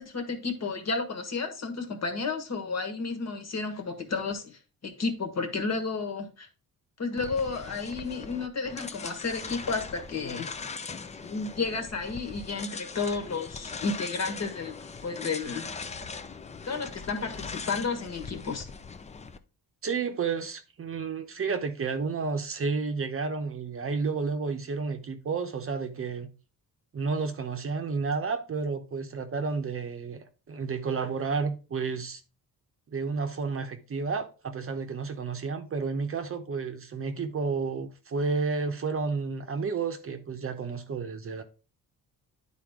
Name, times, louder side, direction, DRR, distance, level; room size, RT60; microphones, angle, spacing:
voice 1, 0.0-6.5 7.0-10.5 11.2-15.7 16.6-18.7, left 4 dB, 45° left, 1.5 m, -32 dB
sound 1, 7.2-19.4, left 4 dB, 20° left, 0.4 m, -40 dB
voice 2, 19.8-26.3 26.9-32.2 32.9-41.4, right 4 dB, 35° right, 0.8 m, -31 dB
10.0 x 4.2 x 3.6 m
cardioid pair, 145°, 37 cm